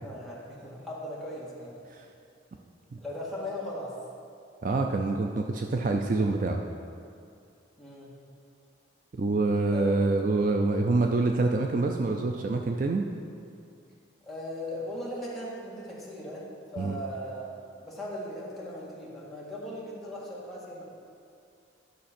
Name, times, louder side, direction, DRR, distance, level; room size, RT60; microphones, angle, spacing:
voice 1, 0.0-1.8 3.0-4.0 7.8-8.1 9.7-10.0 14.2-20.8, left 1 dB, ahead, -7 dB, 1.7 m, -38 dB
voice 2, 4.6-6.6 9.1-13.0 16.8-17.0, right 3 dB, 45° right, 3 dB, 0.4 m, -26 dB
11.0 x 6.0 x 4.3 m, 2.4 s
head